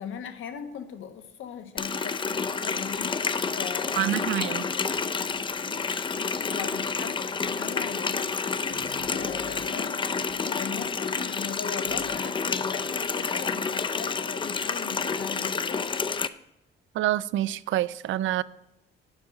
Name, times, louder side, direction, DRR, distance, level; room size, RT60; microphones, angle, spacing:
voice 1, 0.0-4.3 6.5-10.0 10.3-16.2, left 8 dB, 80° left, 7 dB, 1.3 m, -39 dB
Water tap faucet, 1.8-16.3, left 5 dB, 25° left, 0.5 m, -29 dB
voice 2, 4.0-4.6 16.9-18.4, right 13 dB, 75° right, 18 dB, 0.5 m, -27 dB
sound 1, 6.0-12.5, left 5 dB, 50° left, 1.3 m, -48 dB
9.2 x 7.2 x 6.5 m, 0.91 s
cardioid pair, 90°, 20 cm